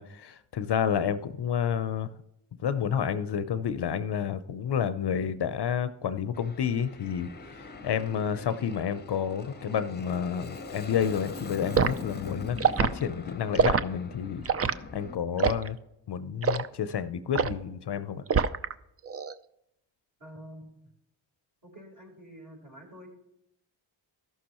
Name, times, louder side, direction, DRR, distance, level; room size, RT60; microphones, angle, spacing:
voice 1, 0.0-2.1 2.6-14.4 14.9-15.8 16.1-18.2, left 8 dB, 55° left, 12 dB, 0.7 m, -30 dB
Aircraft, 6.3-15.2, left 3 dB, 20° left, 0.8 m, -42 dB
Liquid, 11.7-12.0 12.6-12.9 13.5-13.8 14.5-14.8 15.4-15.7 16.4-16.7 17.3-17.6 18.3-18.7 19.1-19.3, right 6 dB, 30° right, 0.5 m, -24 dB
voice 2, 20.2-20.9 21.6-23.1, equal, 45° right, 1 dB, 3.9 m, -48 dB
14.0 x 6.2 x 3.0 m, 0.82 s
supercardioid pair, 50°, 50 cm